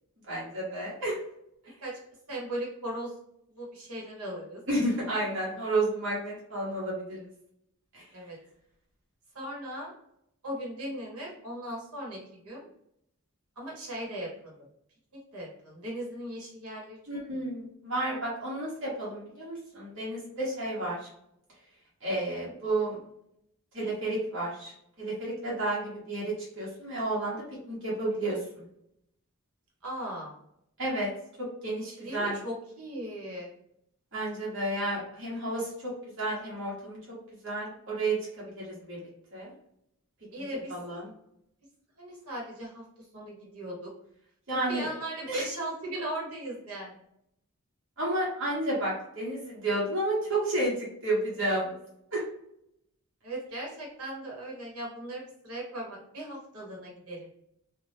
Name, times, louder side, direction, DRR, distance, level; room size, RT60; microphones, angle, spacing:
voice 1, 0.3-1.2 1.6-1.7 4.7-7.3 7.9-8.1 17.1-21.1 22.0-23.0 23.7-24.7 25.0-28.4 30.8-31.1 31.4-32.4 34.1-35.9 36.2-37.0 37.4-39.0 39.3-39.5 40.7-41.1 44.5-44.9 45.3-45.4 48.0-51.8 52.1-52.2, right 1 dB, 55° right, -6 dB, 1.1 m, -31 dB
voice 2, 2.3-3.1 3.5-4.6 8.1-8.4 9.3-9.9 10.4-12.7 13.6-14.5 15.3-17.0 29.8-30.3 31.9-33.5 40.3-41.0 42.0-42.8 43.1-43.9 44.5-46.9 53.2-57.3, right 1 dB, 85° right, -3 dB, 1.3 m, -38 dB
2.6 x 2.4 x 3.3 m, 0.75 s
head